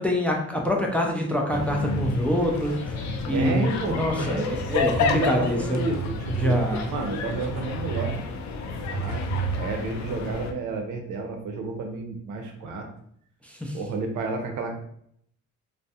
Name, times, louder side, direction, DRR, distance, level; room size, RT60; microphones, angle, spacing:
voice 1, 0.0-3.0 3.3-5.8 6.4-6.8 13.6-13.7, left 1 dB, 5° left, 0 dB, 0.4 m, -25 dB
sound 1, 1.5-10.5, left 4 dB, 70° left, 0.4 m, -31 dB
sound 2, 1.5-3.6 4.0-5.1 5.5-8.1 8.4-9.9, right 6 dB, 30° left, 0.8 m, -34 dB
voice 2, 3.3-4.5 5.1-6.6 6.9-8.2 8.9-9.2 9.6-12.9 13.7-14.7, right 3 dB, 80° right, 3 dB, 0.6 m, -31 dB
2.3 x 2.1 x 2.7 m, 0.67 s
cardioid pair, 90°, 30 cm